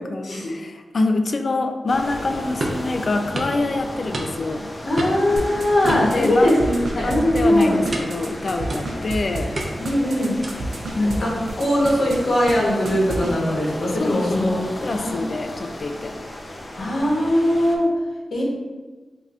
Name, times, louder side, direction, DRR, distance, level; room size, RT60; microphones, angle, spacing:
voice 1, 0.0-4.7 5.8-6.6 7.0-9.5 10.9-11.4 14.0-14.5 14.8-16.1, left 2 dB, 55° left, 6 dB, 0.4 m, -25 dB
sound 1, 1.9-17.8, left 1 dB, 30° left, 0.7 m, -34 dB
sound 2, 2.6-2.9 3.4-3.6 4.1-4.6 5.0-5.3 5.9-6.6 7.0-7.2 7.9-8.2 8.7-9.1 9.6-9.9 10.4-10.7, right 1 dB, 50° right, 0.6 m, -30 dB
voice 2, 4.8-7.8 9.8-10.3 11.0-11.3 11.6-14.6 14.9-15.2 16.8-17.9 18.3-18.4, left 1 dB, 75° left, -4 dB, 1.2 m, -20 dB
sound 3, 5.4-11.2 11.5-12.2 12.5-12.6 12.8-13.3, right 3 dB, 90° right, 0.5 m, -31 dB
5.1 x 2.7 x 2.5 m, 1.3 s
wide cardioid pair, 75°, 0 cm